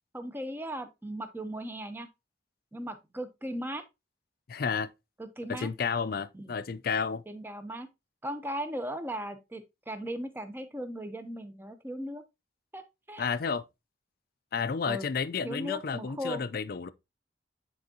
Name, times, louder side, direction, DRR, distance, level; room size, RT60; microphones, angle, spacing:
voice 1, 0.1-2.1 2.7-3.8 5.2-5.7 6.3-6.5 7.3-7.9 8.2-12.2 12.7-12.8 13.1-13.3 14.9-15.1 15.4-16.4, equal, 10° right, 0.7 m, -37 dB
voice 2, 4.5-4.9 5.5-7.2 13.2-13.6 14.5-16.9, left 5 dB, 50° left, 0.4 m, -31 dB
9.4 x 4.5 x 2.8 m
head